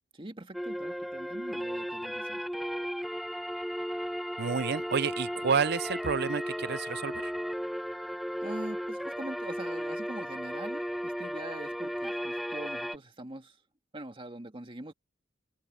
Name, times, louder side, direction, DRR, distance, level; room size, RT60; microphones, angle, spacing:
voice 1, 0.2-2.4 8.4-13.6 13.9-14.9, right 1 dB, 30° right, 2.1 m, -43 dB
sound 1, 0.5-13.0, equal, ahead, 1.0 m, -35 dB
voice 2, 4.4-7.3, right 6 dB, 60° right, 0.6 m, -30 dB
open air
head